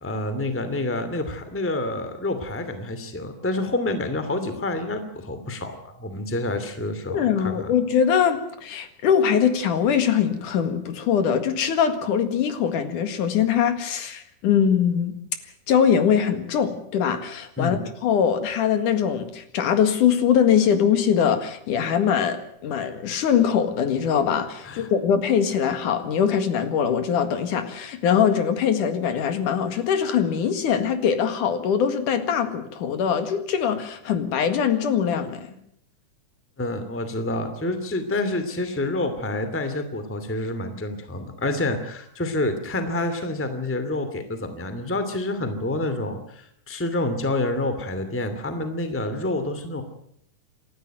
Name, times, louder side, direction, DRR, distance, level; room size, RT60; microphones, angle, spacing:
voice 1, 0.0-7.7 17.6-17.8 24.6-24.9 36.6-49.8, left 2 dB, 5° left, 9 dB, 2.1 m, -28 dB
voice 2, 7.1-15.2 15.7-35.6, left 8 dB, 80° left, 9 dB, 3.4 m, -22 dB
28.0 x 13.0 x 9.2 m, 0.70 s
omnidirectional pair, 3.6 m